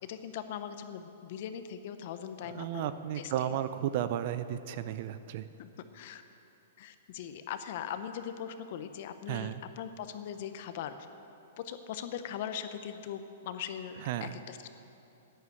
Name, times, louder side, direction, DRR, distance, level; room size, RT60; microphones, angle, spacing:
voice 1, 0.0-3.6 5.6-6.2 6.8-11.0 11.6-14.7, left 9 dB, 50° left, 10 dB, 0.8 m, -40 dB
voice 2, 2.4-5.5 9.3-9.6 14.1-14.4, right 11 dB, 45° right, 13 dB, 0.5 m, -34 dB
10.5 x 10.0 x 7.8 m, 2.9 s
hypercardioid pair, 155°, 0 cm